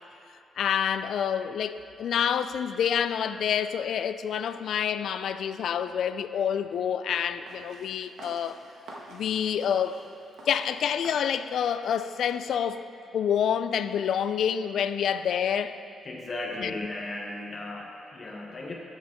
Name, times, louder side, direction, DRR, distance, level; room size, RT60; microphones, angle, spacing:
voice 1, 0.6-8.6 9.1-10.0 10.5-12.8 13.1-15.8 16.6-16.8, left 8 dB, 60° left, 0.3 m, -27 dB
sound 1, 7.5-12.5, right 2 dB, 75° right, 1.5 m, -49 dB
voice 2, 16.1-18.7, left 2 dB, 30° left, 0.9 m, -36 dB
12.0 x 7.4 x 3.6 m
cardioid pair, 165°, 0 cm